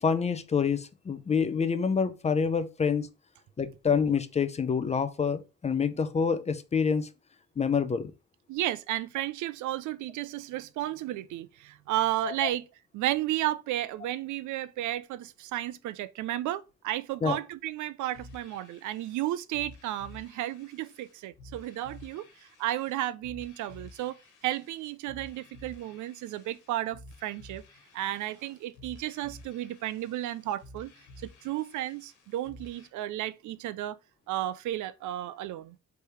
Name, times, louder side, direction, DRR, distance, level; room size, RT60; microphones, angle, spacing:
voice 1, 0.0-3.1 3.6-7.1 7.6-8.1 12.2-12.3 17.2-17.4, left 6 dB, 25° left, 0.4 m, -27 dB
voice 2, 8.5-12.6 12.9-22.3 22.6-24.2 24.4-27.6 27.9-30.9 31.2-34.0 34.3-35.8, right 14 dB, 85° right, 0.4 m, -33 dB
sound 1, 18.1-32.9, left 2 dB, 90° left, 1.4 m, -52 dB
3.3 x 3.3 x 4.6 m
cardioid pair, 135°, 29 cm